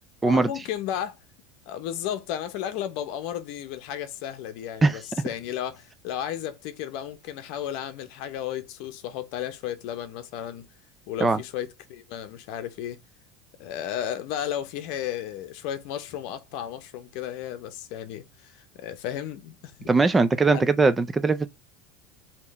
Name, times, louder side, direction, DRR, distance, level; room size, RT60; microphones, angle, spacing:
voice 1, 0.2-1.2 1.7-10.7 11.1-13.0 13.6-19.9 20.5-20.6, left 10 dB, 60° left, 0.7 m, -34 dB
voice 2, 19.9-21.5, right 3 dB, 15° right, 0.3 m, -20 dB
3.7 x 2.9 x 4.1 m
supercardioid pair, 150°, 0 cm